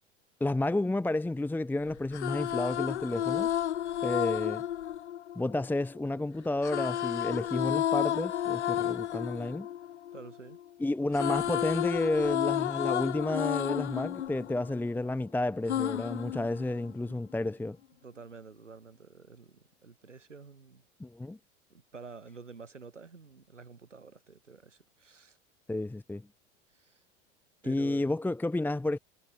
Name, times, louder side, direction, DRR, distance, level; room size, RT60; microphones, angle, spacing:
voice 1, 0.4-3.6 4.0-4.6 5.3-9.7 10.8-17.8 21.0-21.4 25.7-26.2 27.6-29.0, left 2 dB, 5° left, 1.1 m, -31 dB
sound 1, 1.9-6.0 6.6-10.7 10.9-15.2 15.7-17.1, left 11 dB, 70° left, 2.3 m, -32 dB
voice 2, 10.1-10.6 18.0-20.8 21.7-25.4 26.7-27.0 27.6-28.1, right 4 dB, 85° right, 7.3 m, -49 dB
figure-of-eight pair, 80°, 36 cm